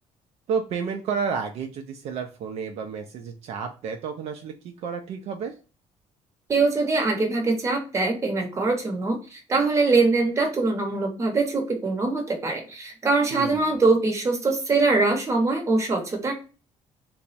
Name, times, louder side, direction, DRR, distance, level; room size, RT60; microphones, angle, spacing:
voice 1, 0.5-5.6 13.3-13.8, right 6 dB, 60° right, 4 dB, 0.4 m, -31 dB
voice 2, 6.5-16.3, right 3 dB, 25° right, 2 dB, 0.8 m, -23 dB
3.4 x 2.0 x 4.0 m, 0.34 s
cardioid pair, 155°, 12 cm